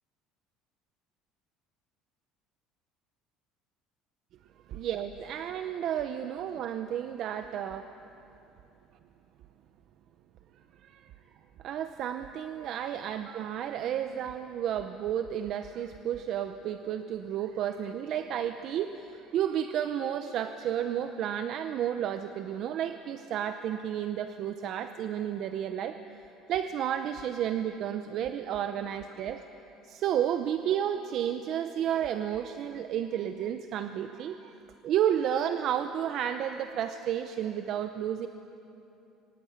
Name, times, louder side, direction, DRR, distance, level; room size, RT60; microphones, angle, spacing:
voice 1, 4.7-7.9 10.8-11.1 11.6-26.0 26.5-29.4 29.8-34.6 34.8-38.3, right 10 dB, 45° right, 9 dB, 0.7 m, -32 dB
23.0 x 17.5 x 9.5 m, 2.9 s
cardioid pair, 160°, 0 cm